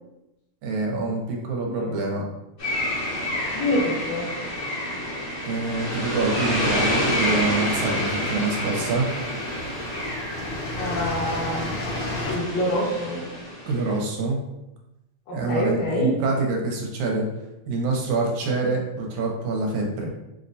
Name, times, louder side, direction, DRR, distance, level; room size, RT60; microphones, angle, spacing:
voice 1, 0.6-2.2 5.5-9.1 13.7-14.4 15.3-17.3 17.7-20.1, right 3 dB, 80° right, 0 dB, 2.0 m, -26 dB
voice 2, 1.6-2.0 3.5-4.3 10.8-11.6 12.3-13.3 15.3-16.2, left 1 dB, 70° left, -6 dB, 1.9 m, -26 dB
sound 1, 2.6-13.9, left 1 dB, 45° left, 0.8 m, -28 dB
sound 2, 7.0-7.8 8.7-8.8 9.1-12.4, left 2 dB, 90° left, 2.7 m, -32 dB
6.2 x 2.1 x 2.6 m, 0.94 s
omnidirectional pair, 3.5 m